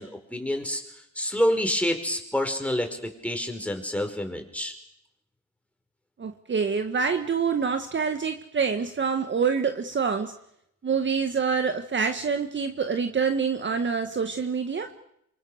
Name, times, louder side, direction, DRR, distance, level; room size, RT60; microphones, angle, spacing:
voice 1, 0.0-2.9 3.2-4.7, equal, 5° left, 4 dB, 5.1 m, -28 dB
voice 2, 6.2-10.3 10.8-14.9, right 5 dB, 40° right, 6 dB, 1.7 m, -26 dB
26.5 x 24.5 x 6.5 m, 0.77 s
cardioid pair, 90°, 30 cm